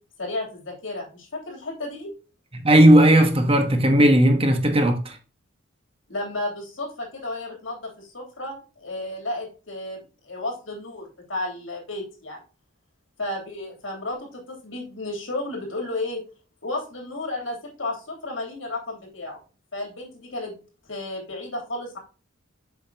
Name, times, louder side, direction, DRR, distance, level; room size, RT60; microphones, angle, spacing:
voice 1, 0.2-2.1 6.1-12.4 13.2-16.2 16.6-19.4 19.7-20.5 20.9-22.0, left 2 dB, 85° left, 3.1 m, -33 dB
voice 2, 2.6-5.1, right 1 dB, 30° right, 1.2 m, -16 dB
7.4 x 5.9 x 2.8 m
head